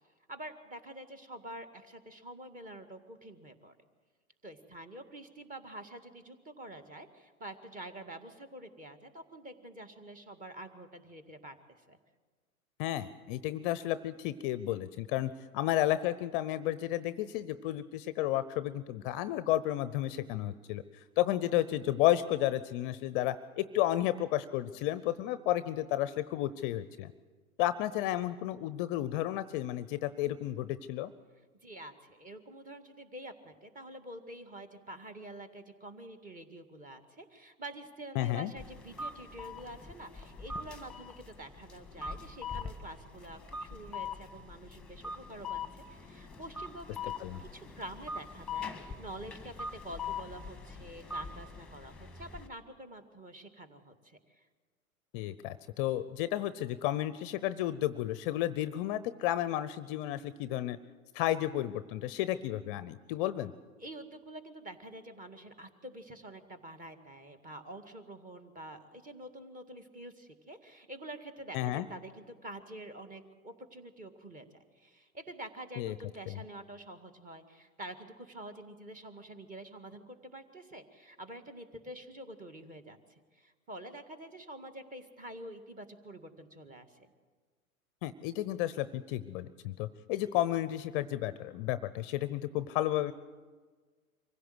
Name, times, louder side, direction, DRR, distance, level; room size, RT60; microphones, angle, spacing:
voice 1, 0.3-3.8 4.4-11.6 11.9-12.0 31.6-54.5 63.8-74.5 74.8-87.1, right 1 dB, 20° right, 8 dB, 2.0 m, -47 dB
voice 2, 12.8-27.1 27.6-31.1 38.2-38.5 47.2-47.4 55.1-60.8 61.1-63.5 71.5-71.9 75.8-75.9 76.3-76.4 88.0-93.1, left 14 dB, 40° left, 14 dB, 0.7 m, -32 dB
sound 1, 38.6-52.5, left 4 dB, ahead, 1.6 m, -43 dB
25.0 x 16.0 x 8.0 m, 1.4 s
hypercardioid pair, 110°, 43 cm